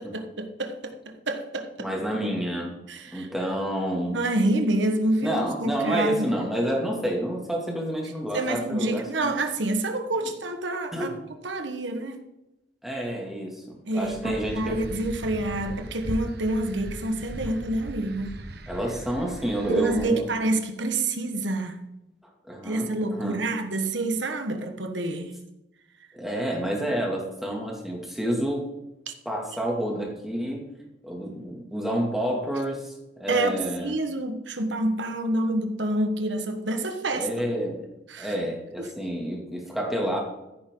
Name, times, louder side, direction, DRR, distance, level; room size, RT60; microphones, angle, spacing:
voice 1, 0.0-1.7 2.9-3.3 4.1-6.3 8.3-11.1 11.4-12.2 13.9-18.4 19.7-21.9 22.6-25.4 29.1-29.2 33.3-37.3 38.1-38.3 38.8-38.9, right 2 dB, 80° right, 6 dB, 1.5 m, -28 dB
voice 2, 1.8-2.7 3.1-4.2 5.2-9.3 10.2-10.3 10.9-11.2 12.8-14.8 18.7-20.3 22.5-23.4 26.1-28.6 29.3-30.6 31.0-32.9 33.2-34.0 37.1-37.9 38.2-40.2, equal, ahead, -1 dB, 2.4 m, -29 dB
sound 1, 14.0-20.1, right 1 dB, 60° right, 1.1 m, -38 dB
14.5 x 8.8 x 3.9 m, 0.94 s
head